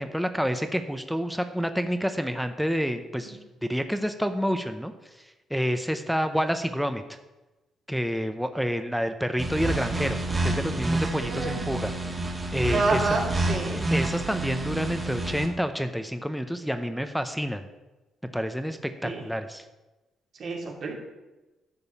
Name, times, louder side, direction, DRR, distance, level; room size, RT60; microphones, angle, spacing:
voice 1, 0.0-4.9 5.5-7.0 7.9-11.9 12.5-13.2 13.9-17.7 18.3-19.6, equal, ahead, 7 dB, 0.7 m, -28 dB
sound 1, 9.4-15.5, right 2 dB, 25° right, 1.8 m, -29 dB
voice 2, 11.2-11.6 12.7-13.8 19.0-19.2 20.4-20.9, right 3 dB, 55° right, -1 dB, 2.7 m, -28 dB
10.5 x 5.4 x 7.1 m, 1.1 s
cardioid pair, 90°, 0 cm